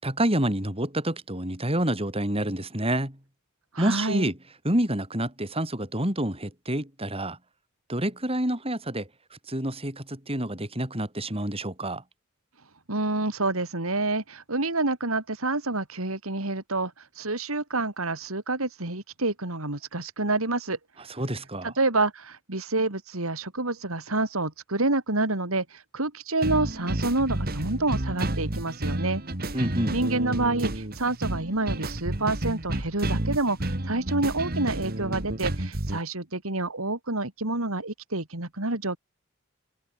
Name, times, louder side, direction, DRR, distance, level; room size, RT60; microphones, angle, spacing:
voice 1, 0.0-3.2 3.8-4.4 4.6-7.4 7.9-12.0 21.2-21.7 29.5-30.0, right 1 dB, 25° right, 7.6 m, -28 dB
voice 2, 3.7-4.3 12.9-20.8 21.6-29.2 29.9-39.0, right 2 dB, 90° right, 3.6 m, -28 dB
sound 1, 26.4-36.0, right 1 dB, 45° right, 2.2 m, -30 dB
head